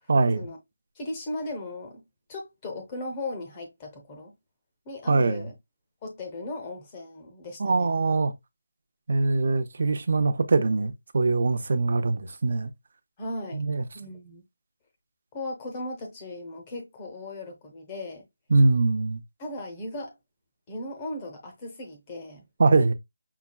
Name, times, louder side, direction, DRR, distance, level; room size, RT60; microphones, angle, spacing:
voice 1, 0.1-0.5 5.1-5.4 7.6-8.3 9.1-12.7 13.5-13.8 18.5-19.2 22.6-22.9, right 3 dB, 45° right, 0.6 m, -22 dB
voice 2, 1.0-2.0 2.3-4.3 4.8-5.5 6.0-7.9 13.2-13.6 13.9-14.4 15.3-18.2 19.4-20.1 20.7-22.4, left 2 dB, 15° left, 0.8 m, -37 dB
5.7 x 2.2 x 2.3 m
figure-of-eight pair, 175°, 0 cm